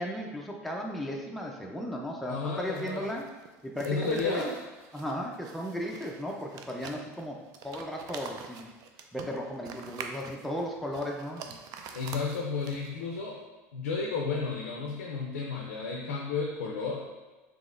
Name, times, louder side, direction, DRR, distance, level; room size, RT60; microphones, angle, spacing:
voice 1, 0.0-3.3 3.6-4.5 4.9-8.7 9.1-11.6, equal, ahead, -1 dB, 0.5 m, -35 dB
voice 2, 2.3-3.1 3.8-4.6 11.9-13.4 13.7-17.0, left 4 dB, 90° left, 0 dB, 0.4 m, -32 dB
sound 1, 2.6-13.1, right 6 dB, 55° right, 0.4 m, -46 dB
3.7 x 2.9 x 2.5 m, 1.2 s
hypercardioid pair, 80°, 8 cm